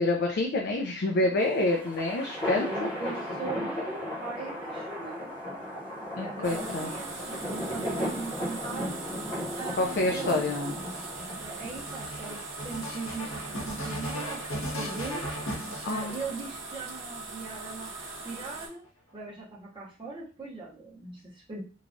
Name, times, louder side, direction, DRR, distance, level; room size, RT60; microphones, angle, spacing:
voice 1, 0.0-2.9 6.2-6.9 9.8-10.7 15.9-16.2, left 2 dB, 55° left, 2 dB, 0.4 m, -27 dB
sound 1, 1.4-11.9, equal, 25° left, 0.7 m, -36 dB
voice 2, 2.5-5.2 6.0-9.0 9.5-10.8 11.4-15.3 15.8-18.8 19.1-21.6, right 3 dB, 25° right, -6 dB, 0.7 m, -40 dB
sound 2, 6.4-18.7, right 3 dB, 60° right, 0.7 m, -41 dB
sound 3, 8.8-16.7 17.5-18.4, equal, 80° left, 0.9 m, -38 dB
3.1 x 2.2 x 2.5 m, 0.36 s
head